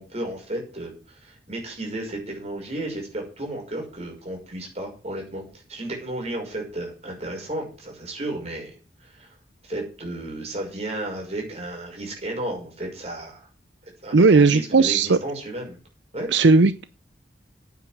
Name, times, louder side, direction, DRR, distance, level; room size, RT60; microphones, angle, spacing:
voice 1, 0.0-8.8 9.0-9.3 9.6-13.5 13.8-15.8 16.1-16.3, right 1 dB, 40° right, 5.9 m, -33 dB
voice 2, 14.1-15.2 16.3-16.9, right 4 dB, 90° right, 0.6 m, -16 dB
9.1 x 8.5 x 7.8 m
head